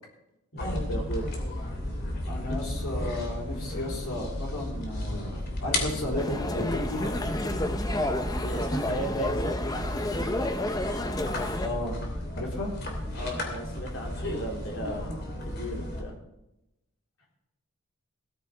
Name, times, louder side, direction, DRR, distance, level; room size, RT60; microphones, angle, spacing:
voice 1, 0.5-1.2 2.5-2.6 8.4-9.6 13.1-15.1 15.4-16.1, right 1 dB, 65° left, 1 dB, 2.6 m, -35 dB
sound 1, 0.6-16.0, left 1 dB, 45° left, 2.8 m, -33 dB
voice 2, 2.3-7.2 11.6-12.0 12.3-12.7, left 1 dB, 85° left, -3 dB, 3.9 m, -34 dB
sound 2, 6.2-11.7, left 1 dB, 15° left, 0.7 m, -30 dB
17.5 x 13.5 x 3.4 m, 0.92 s
head